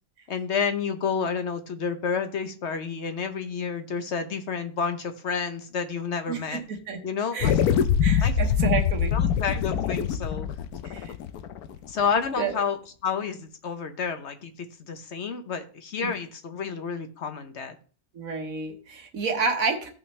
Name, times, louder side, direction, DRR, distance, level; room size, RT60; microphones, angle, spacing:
voice 1, 0.3-6.6 7.0-7.6 8.2-8.5 9.1-10.5 11.9-17.8, left 6 dB, 55° left, 8 dB, 0.9 m, -30 dB
voice 2, 6.3-7.0 7.3-7.5 8.0-9.1 10.8-11.1 12.4-12.5 16.0-16.1 18.1-19.9, right 5 dB, 65° right, 5 dB, 1.4 m, -29 dB
sound 1, 7.4-12.1, left 8 dB, 80° left, 1.1 m, -24 dB
15.5 x 5.6 x 3.2 m, 0.41 s
omnidirectional pair, 1.6 m